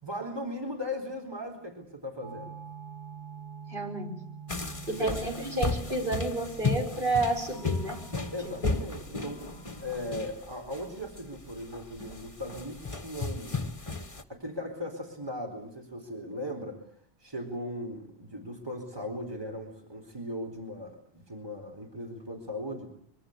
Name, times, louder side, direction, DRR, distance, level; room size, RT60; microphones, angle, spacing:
voice 1, 0.0-2.5 4.9-5.2 8.3-9.4 9.8-13.6 14.3-16.8 17.2-22.9, left 1 dB, 25° right, 4 dB, 4.4 m, -38 dB
sound 1, 2.2-10.2, right 5 dB, 85° right, 4.3 m, -46 dB
voice 2, 3.7-4.1 4.9-8.0, right 2 dB, 55° right, 2 dB, 5.4 m, -30 dB
sound 2, 4.5-14.2, left 3 dB, 30° left, 1.6 m, -34 dB
25.0 x 24.0 x 8.2 m, 0.62 s
omnidirectional pair, 1.1 m